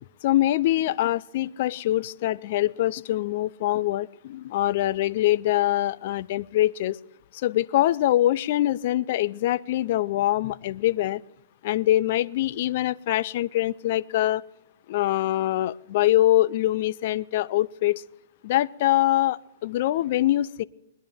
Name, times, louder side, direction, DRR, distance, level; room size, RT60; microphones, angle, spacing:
voice 1, 0.2-7.0 7.4-11.2 11.6-14.4 14.9-18.0 18.4-20.6, left 14 dB, 45° left, 18 dB, 0.4 m, -24 dB
21.5 x 10.5 x 3.5 m, 0.81 s
hypercardioid pair, 155°, 0 cm